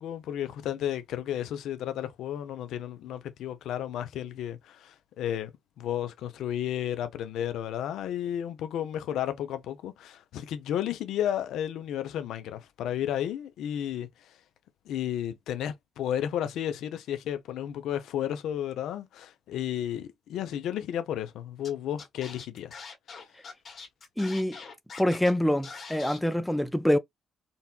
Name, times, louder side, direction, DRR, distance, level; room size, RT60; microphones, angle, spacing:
voice 1, 0.0-5.5 5.8-14.1 14.9-22.8, left 10 dB, 80° left, 0.5 m, -33 dB
Scratching (performance technique), 21.6-21.7 22.0-25.3 25.6-26.2, left 5 dB, 50° left, 1.5 m, -43 dB
voice 2, 24.2-24.6 25.0-27.0, left 1 dB, 5° left, 0.4 m, -25 dB
4.0 x 2.2 x 2.2 m
cardioid pair, 90°, 0 cm